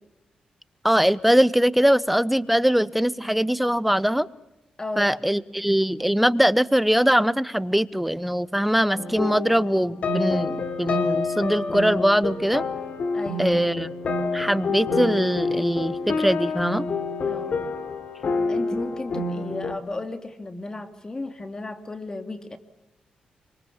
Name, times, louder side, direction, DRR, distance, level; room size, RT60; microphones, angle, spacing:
voice 1, 0.8-4.3 5.0-12.7 13.4-13.9 14.3-16.9, equal, 5° right, 17 dB, 0.8 m, -21 dB
voice 2, 4.8-5.1 13.1-13.6 17.3-17.7 18.5-22.6, left 2 dB, 25° left, 9 dB, 2.6 m, -34 dB
sound 1, 9.0-19.8, left 3 dB, 60° left, 3.2 m, -28 dB
26.5 x 25.0 x 7.2 m, 0.94 s
cardioid pair, 100°, 3 cm